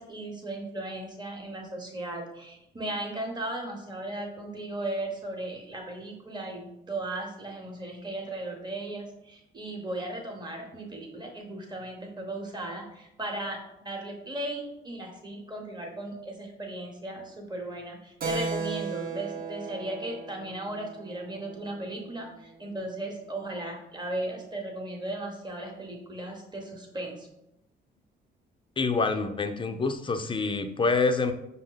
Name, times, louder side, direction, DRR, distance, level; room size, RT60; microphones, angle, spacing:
voice 1, 0.0-27.3, right 1 dB, 20° right, 1 dB, 1.0 m, -36 dB
Keyboard (musical), 18.2-22.3, right 4 dB, 45° right, 0.6 m, -36 dB
voice 2, 28.8-31.3, left 4 dB, 25° left, 8 dB, 0.4 m, -26 dB
5.5 x 2.1 x 3.8 m, 0.84 s
cardioid pair, 90°, 20 cm